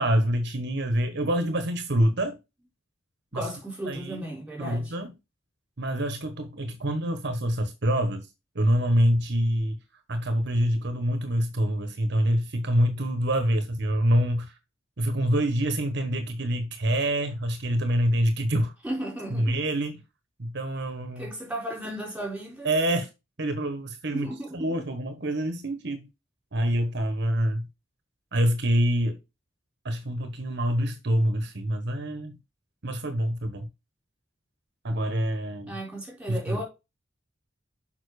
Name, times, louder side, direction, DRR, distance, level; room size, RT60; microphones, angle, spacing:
voice 1, 0.0-2.4 3.3-3.5 3.9-4.3 4.6-5.1 5.8-8.3 8.5-9.8 10.1-14.6 15.0-18.7 19.3-20.0 20.4-21.3 22.6-23.1 23.4-26.1 26.5-27.7 28.3-29.2 29.8-32.4 32.8-33.7 34.8-35.7 36.3-36.6, equal, 60° right, 1.2 m, -26 dB
voice 2, 3.3-5.0 18.8-19.6 21.2-22.7 24.1-24.7 35.7-36.6, right 1 dB, 5° right, 4.4 m, -35 dB
6.8 x 5.7 x 4.8 m
head